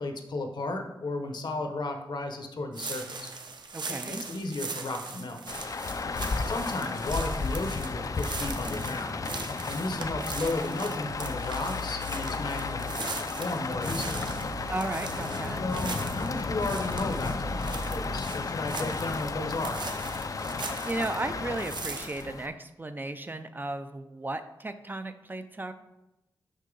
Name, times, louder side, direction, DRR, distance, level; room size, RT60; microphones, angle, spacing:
voice 1, 0.0-3.3 4.1-5.4 6.4-9.2 9.7-12.8 13.4-14.2 15.6-19.9, left 2 dB, 60° left, 5 dB, 0.9 m, -34 dB
sound 1, 2.7-21.2 21.6-22.2, right 4 dB, 65° right, 0.8 m, -40 dB
voice 2, 3.7-4.2 6.2-6.3 14.7-15.6 20.6-25.7, right 2 dB, 25° right, 9 dB, 0.4 m, -35 dB
Rain, 5.5-22.5, left 4 dB, 45° left, 0.4 m, -33 dB
sound 2, 11.1-18.2, left 1 dB, 85° left, 1.6 m, -42 dB
6.4 x 5.5 x 3.8 m, 0.94 s
wide cardioid pair, 100°, 8 cm